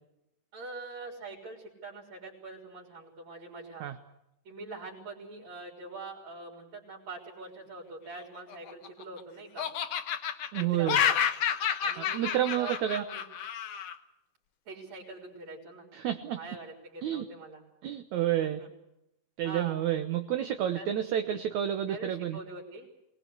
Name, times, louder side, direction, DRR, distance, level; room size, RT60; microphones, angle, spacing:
voice 1, 0.5-3.9 4.4-9.7 10.5-11.2 11.8-13.3 14.7-15.9 16.3-17.6 18.4-18.7 19.4-19.8 20.7-20.9 21.9-22.9, right 3 dB, 50° right, -2 dB, 5.1 m, -44 dB
Laughter, 8.4-9.2 9.6-14.0, left 8 dB, 60° left, 1.7 m, -30 dB
voice 2, 10.5-11.0 12.0-13.0 15.9-16.4 17.0-17.2 17.8-18.6 19.4-22.4, right 11 dB, 65° right, 7 dB, 2.0 m, -30 dB
24.5 x 19.5 x 8.2 m, 0.86 s
omnidirectional pair, 4.0 m